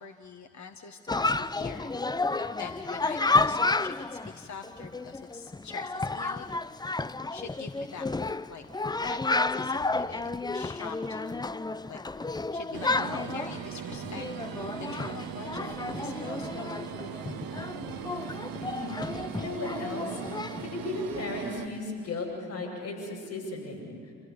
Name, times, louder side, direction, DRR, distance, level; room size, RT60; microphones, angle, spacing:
voice 1, 0.0-2.0 2.4-8.6 9.0-12.0 12.5-17.0, left 5 dB, 45° left, 5 dB, 1.5 m, -44 dB
Chatter, 1.1-20.7, left 3 dB, 10° left, 0.5 m, -31 dB
sound 1, 12.7-21.7, right 7 dB, 60° right, 1.3 m, -39 dB
voice 2, 18.6-24.1, left 2 dB, 85° left, -5 dB, 6.6 m, -36 dB
26.5 x 16.0 x 10.0 m, 2.1 s
hypercardioid pair, 40°, 40 cm